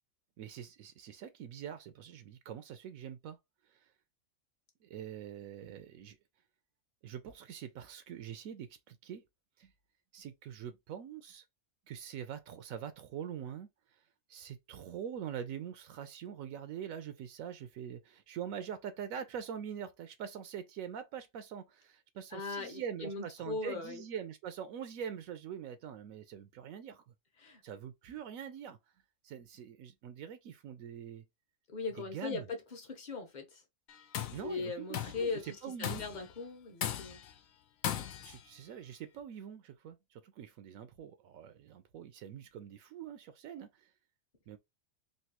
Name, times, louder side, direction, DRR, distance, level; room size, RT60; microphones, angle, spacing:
voice 1, 0.4-3.4 3.7-3.9 4.8-6.2 7.0-9.2 9.6-9.7 10.1-11.4 11.9-13.7 14.3-27.1 27.6-28.8 29.2-31.3 32.0-32.5 34.3-34.9 35.2-36.0 38.2-43.9 44.5-44.6, right 8 dB, 80° right, 1.0 m, -44 dB
voice 2, 22.3-24.0 27.4-27.6 31.7-33.6 34.4-35.4 35.8-37.2, left 4 dB, 40° left, 0.9 m, -39 dB
Tools, 33.9-34.5 34.9-35.3 35.8-36.3 36.8-37.3 37.8-38.4, left 10 dB, 75° left, 1.0 m, -37 dB
3.2 x 2.6 x 2.8 m
omnidirectional pair, 1.4 m